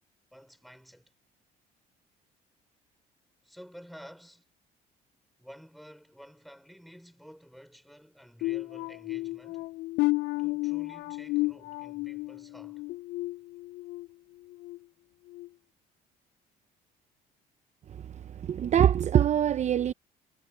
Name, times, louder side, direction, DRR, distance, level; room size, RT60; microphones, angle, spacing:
voice 1, 0.3-1.1 3.4-4.4 5.4-9.7 10.4-12.8, equal, ahead, 5.5 m, -51 dB
sound 1, 8.4-14.1 14.5-14.8 15.3-15.5, left 22 dB, 80° left, 0.4 m, -32 dB
voice 2, 17.9-19.9, right 10 dB, 45° right, 0.7 m, -24 dB
cardioid pair, 110°, 17 cm